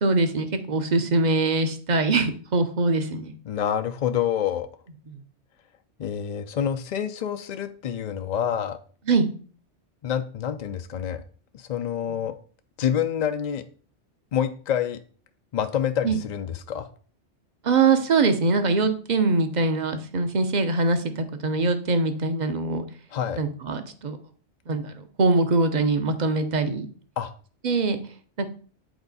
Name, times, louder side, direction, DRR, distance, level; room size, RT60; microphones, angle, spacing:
voice 1, 0.0-3.3 5.1-5.2 9.1-9.3 16.0-16.2 17.6-22.8 23.4-24.2 24.7-26.9 27.6-28.0 28.4-28.5, right 3 dB, 45° right, 9 dB, 0.8 m, -23 dB
voice 2, 3.4-4.7 6.0-8.8 10.0-11.2 11.5-12.3 12.8-13.6 14.3-15.0 15.5-16.9 23.1-23.4 27.2-27.3, left 9 dB, 60° left, 8 dB, 0.4 m, -27 dB
7.9 x 4.4 x 4.0 m, 0.42 s
omnidirectional pair, 1.2 m